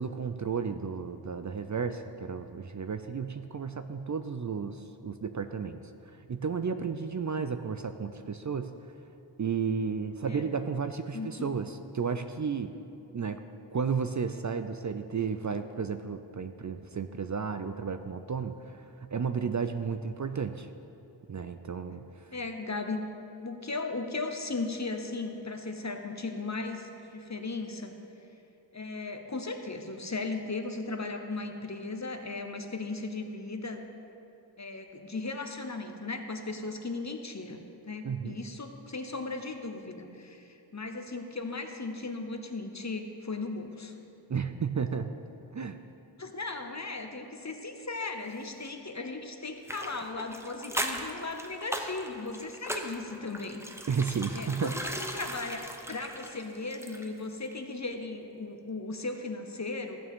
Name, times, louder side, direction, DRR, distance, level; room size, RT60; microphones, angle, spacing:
voice 1, 0.0-8.9 9.4-12.7 13.1-13.4 13.7-20.7 21.3-22.3 38.0-38.4 44.3-45.1 45.5-45.8 53.9-54.7, right 6 dB, 45° right, 9 dB, 0.4 m, -33 dB
voice 2, 11.1-11.5 22.3-23.0 23.4-27.9 28.7-33.8 34.6-43.9 46.2-53.6 54.3-54.8 55.1-60.0, left 3 dB, 40° left, 5 dB, 0.9 m, -37 dB
sound 1, 49.6-57.2 57.5-57.6, right 1 dB, 5° right, 0.7 m, -38 dB
14.0 x 9.0 x 3.6 m, 2.7 s
wide cardioid pair, 55°, 44 cm